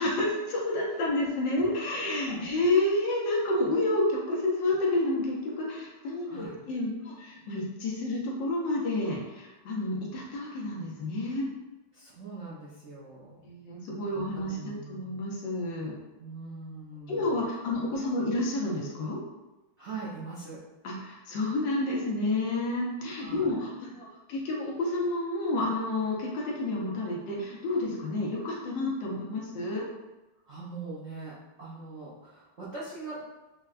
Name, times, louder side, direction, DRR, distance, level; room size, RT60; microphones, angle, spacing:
voice 1, 0.0-11.5 13.4-15.9 17.1-19.2 20.8-29.9, left 2 dB, 70° left, -3 dB, 1.4 m, -30 dB
voice 2, 6.3-6.6 11.9-13.4 14.1-15.2 16.2-17.3 19.8-20.6 23.1-23.6 30.4-33.2, right 3 dB, 80° right, -9 dB, 0.6 m, -42 dB
4.4 x 2.2 x 2.4 m, 1.1 s
omnidirectional pair, 2.2 m